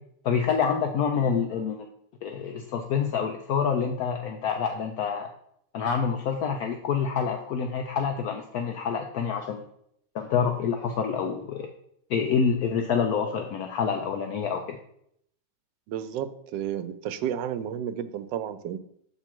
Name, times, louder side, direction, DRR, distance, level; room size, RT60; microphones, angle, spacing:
voice 1, 0.2-1.8 2.2-5.3 5.7-9.6 10.1-11.7 12.1-14.8, left 6 dB, 70° left, 4 dB, 1.0 m, -27 dB
voice 2, 15.9-18.8, right 9 dB, 85° right, 11 dB, 1.2 m, -32 dB
7.1 x 3.8 x 4.4 m, 0.70 s
omnidirectional pair, 1.9 m